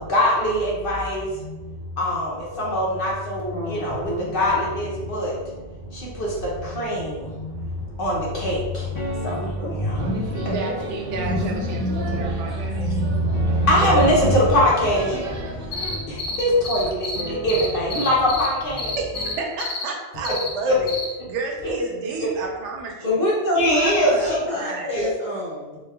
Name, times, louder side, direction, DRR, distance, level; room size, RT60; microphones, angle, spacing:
voice 1, 0.0-5.3 5.9-10.5 12.0-19.0 20.7-20.8 21.6-21.7 22.2-22.3 23.6-24.5 24.9-25.1, equal, 55° left, -4 dB, 0.8 m, -23 dB
voice 2, 3.5-4.3 9.4-9.7 23.0-25.8, left 1 dB, 15° left, -10 dB, 1.4 m, -26 dB
sound 1, 4.6-8.1 9.0-19.4, right 1 dB, 35° left, 0.3 m, -40 dB
sound 2, 10.0-16.0, equal, 60° right, 0.7 m, -30 dB
voice 3, 10.3-12.9 19.0-21.0 21.3-23.2 24.2-24.9, right 4 dB, 80° right, 0 dB, 0.9 m, -31 dB
sound 3, 15.7-17.2 17.5-18.5 18.8-19.3 19.6-19.8 20.2-20.5 20.9-21.1, left 5 dB, 85° left, 1.0 m, -29 dB
3.1 x 2.1 x 3.3 m, 1.2 s
omnidirectional pair, 1.2 m